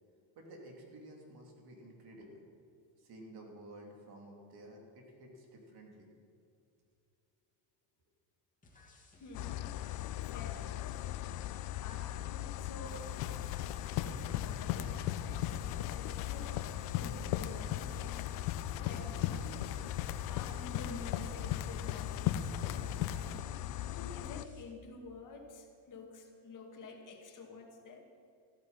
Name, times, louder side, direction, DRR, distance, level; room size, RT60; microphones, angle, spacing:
voice 1, 0.3-2.5 3.0-6.1, right 1 dB, 50° right, 1 dB, 3.2 m, -52 dB
sound 1, 8.6-24.6, left 3 dB, 15° left, 2.4 m, -60 dB
voice 2, 9.2-9.8 10.2-11.0 11.8-13.5 13.8-19.6 20.3-23.5 24.0-28.1, left 3 dB, 40° left, 2 dB, 2.2 m, -50 dB
sound 2, 9.3-24.5, left 15 dB, 60° left, 0.6 m, -40 dB
sound 3, 12.9-23.4, left 10 dB, 85° left, 0.9 m, -38 dB
14.5 x 12.0 x 5.7 m, 2.4 s
cardioid pair, 135°, 47 cm